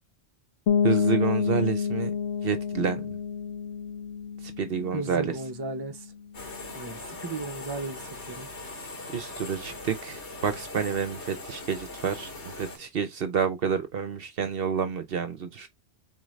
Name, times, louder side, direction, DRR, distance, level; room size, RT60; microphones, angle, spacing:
sound 1, 0.7-6.3, left 7 dB, 70° left, 1.2 m, -29 dB
voice 1, 0.8-2.1 2.4-3.2 4.4-5.3 9.1-15.7, right 7 dB, 60° right, 0.9 m, -29 dB
voice 2, 4.9-6.1 6.7-8.5, right 3 dB, 25° right, 0.7 m, -35 dB
sound 2, 6.3-12.8, left 3 dB, 90° left, 2.2 m, -40 dB
4.4 x 3.8 x 3.1 m
omnidirectional pair, 1.1 m